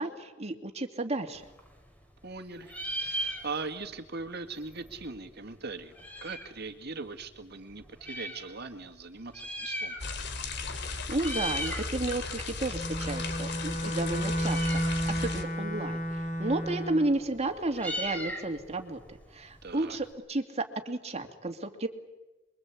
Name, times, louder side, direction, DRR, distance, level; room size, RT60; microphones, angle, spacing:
voice 1, 0.0-1.4 10.8-16.0 16.4-19.0 19.3-21.9, right 2 dB, 35° right, 5 dB, 2.6 m, -32 dB
Meow, 1.4-2.4 2.6-3.9 4.2-4.3 4.5-6.6 7.2-8.4 9.2-10.4 10.6-10.9 11.1-11.9 12.3-20.1, equal, 10° left, 4.0 m, -39 dB
voice 2, 2.2-2.7 3.0-5.9 6.2-10.0 19.6-20.0, right 3 dB, 55° right, 6 dB, 2.2 m, -40 dB
sound 1, 10.0-15.4, left 4 dB, 60° left, 2.9 m, -36 dB
Bowed string instrument, 12.7-17.2, equal, 40° left, 3.1 m, -32 dB
28.0 x 23.5 x 8.6 m, 1.1 s
head